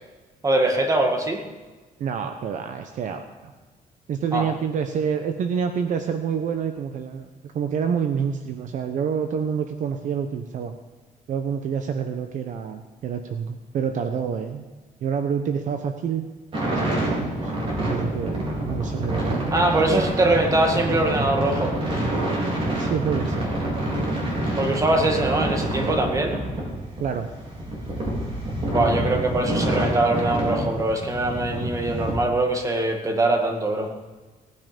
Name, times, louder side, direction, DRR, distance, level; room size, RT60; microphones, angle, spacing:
voice 1, 0.4-1.4 4.3-4.5 19.5-21.7 24.6-26.4 28.7-33.9, right 2 dB, 20° right, 3 dB, 2.1 m, -22 dB
voice 2, 2.0-3.5 4.1-10.7 11.3-14.6 15.0-16.3 16.6-17.5 17.8-19.5 22.8-23.5 27.0-27.3, right 7 dB, 60° right, 7 dB, 0.9 m, -27 dB
sound 1, 16.5-32.1, right 1 dB, 40° right, 4.6 m, -27 dB
18.0 x 9.4 x 5.2 m, 1.3 s
cardioid pair, 130°, 15 cm